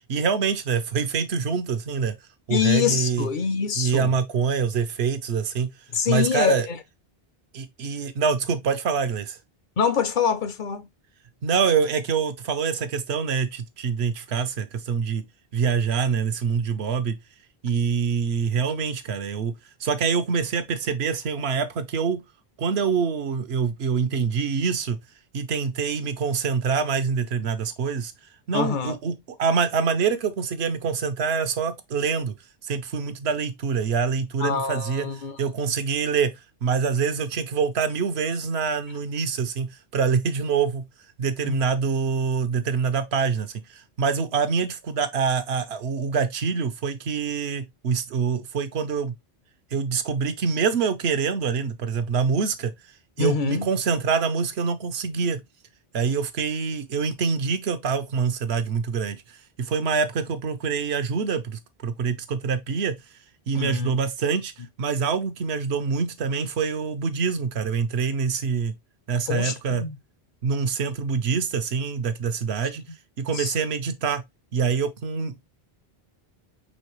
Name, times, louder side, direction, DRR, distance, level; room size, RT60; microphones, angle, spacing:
voice 1, 0.1-2.1 2.5-3.3 3.8-5.7 6.1-6.7 7.5-9.4 11.4-15.2 15.5-17.1 17.6-19.5 19.8-22.2 22.6-25.0 25.3-28.1 28.5-29.1 29.4-32.3 32.6-35.1 35.4-36.3 36.6-40.8 41.2-49.1 49.7-52.7 53.2-55.4 55.9-63.0 63.5-64.5 64.8-68.7 69.1-69.8 70.4-72.8 73.2-74.2 74.5-75.4, right 6 dB, 80° right, 1.0 m, -25 dB
voice 2, 2.5-4.1 5.9-6.8 9.8-10.9 28.5-28.9 34.4-35.4 35.6-35.7 41.4-41.6 53.2-53.7 63.6-63.9 69.3-70.0 73.3-73.5, left 7 dB, 60° left, 0.6 m, -25 dB
5.4 x 3.2 x 3.0 m
omnidirectional pair, 1.1 m